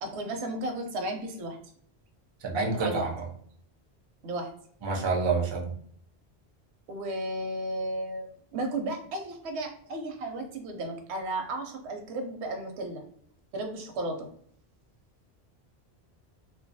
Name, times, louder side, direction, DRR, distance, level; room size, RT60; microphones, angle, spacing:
voice 1, 0.0-1.6 2.5-3.1 4.2-4.5 6.9-13.0 13.5-14.3, right 1 dB, 85° right, 4 dB, 0.8 m, -34 dB
voice 2, 2.4-3.3 4.8-5.7, right 4 dB, 45° right, 0 dB, 0.3 m, -28 dB
2.2 x 2.2 x 2.6 m, 0.64 s
omnidirectional pair, 1.1 m